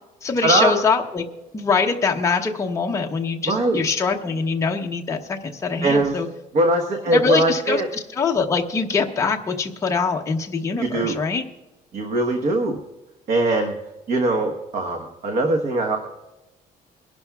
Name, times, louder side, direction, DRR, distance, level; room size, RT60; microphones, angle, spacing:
voice 1, 0.2-1.2 1.5-6.3 7.1-11.4, left 5 dB, 20° left, 2 dB, 0.8 m, -23 dB
voice 2, 3.5-3.8 5.8-6.2 6.5-7.9 10.8-11.2 11.9-12.8 13.3-13.7 14.1-16.0, right 2 dB, 45° right, 4 dB, 1.2 m, -21 dB
23.5 x 11.5 x 2.4 m, 1.1 s
cardioid pair, 160°, 16 cm